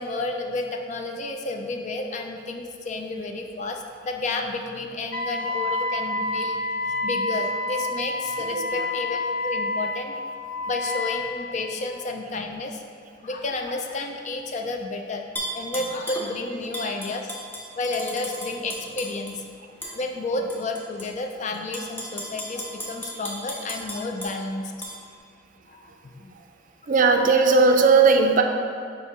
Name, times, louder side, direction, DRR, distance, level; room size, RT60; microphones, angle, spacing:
voice 1, 0.0-10.2 10.7-12.8 13.2-15.2 15.5-17.3 17.7-19.4 19.8-24.7 25.7-26.4, left 2 dB, 40° left, 4 dB, 0.4 m, -31 dB
Wind instrument woodwind instrument, 5.1-11.4, left 2 dB, 75° left, 0.7 m, -28 dB
voice 2, 8.5-8.9 26.3-26.4 26.9-28.4, right 4 dB, 45° right, 4 dB, 0.4 m, -18 dB
Tap / Glass, 15.4-16.3 16.7-19.3 19.8-19.9 20.5-21.1 21.5-24.3 24.8-24.9, equal, 10° left, 0.8 m, -34 dB
7.0 x 2.8 x 4.8 m, 2.3 s
head